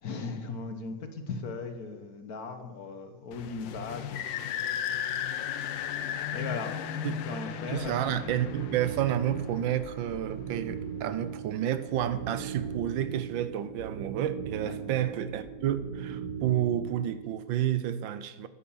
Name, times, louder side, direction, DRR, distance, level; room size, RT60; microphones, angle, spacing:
voice 1, 0.0-5.2 5.7-7.0 7.2-8.4 14.6-14.8, left 4 dB, 55° left, 1.7 m, -39 dB
sound 1, 3.3-10.6, left 9 dB, 80° left, 1.4 m, -36 dB
sound 2, 5.6-16.4, left 4 dB, 40° left, 2.9 m, -51 dB
voice 2, 7.7-18.5, right 11 dB, 90° right, 1.5 m, -30 dB
sound 3, 8.2-17.4, right 8 dB, 55° right, 1.2 m, -39 dB
11.5 x 10.0 x 7.1 m
omnidirectional pair, 2.0 m